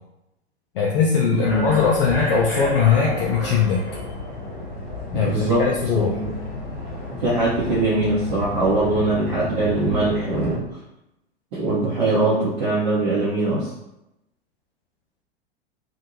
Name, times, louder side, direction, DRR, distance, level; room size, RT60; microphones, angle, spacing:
voice 1, 0.7-3.8 5.1-6.2, left 6 dB, 55° left, -1 dB, 0.5 m, -20 dB
voice 2, 1.3-1.6 5.1-5.7 5.9-6.3 7.1-10.6 11.5-13.7, right 2 dB, 45° right, -8 dB, 0.8 m, -22 dB
sound 1, 1.4-10.6, left 1 dB, 25° left, 0.9 m, -31 dB
2.6 x 2.2 x 2.9 m, 0.88 s
figure-of-eight pair, 95°, 32 cm